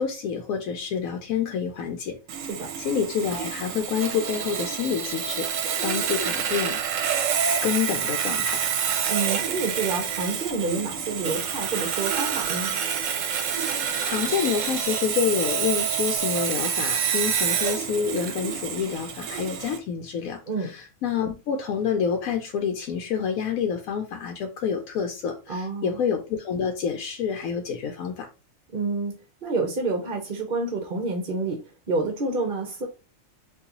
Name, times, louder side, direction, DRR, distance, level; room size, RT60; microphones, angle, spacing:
voice 1, 0.0-2.2 2.8-6.8 7.6-8.6 13.6-13.7 14.0-28.3, left 7 dB, 85° left, 1.0 m, -28 dB
Sawing, 2.3-19.8, right 7 dB, 70° right, 0.9 m, -27 dB
voice 2, 9.1-12.7 20.5-20.7 25.5-26.0 28.7-29.1 29.4-31.6 31.9-32.9, right 3 dB, 50° right, 0.8 m, -28 dB
3.9 x 2.7 x 2.8 m
omnidirectional pair, 1.4 m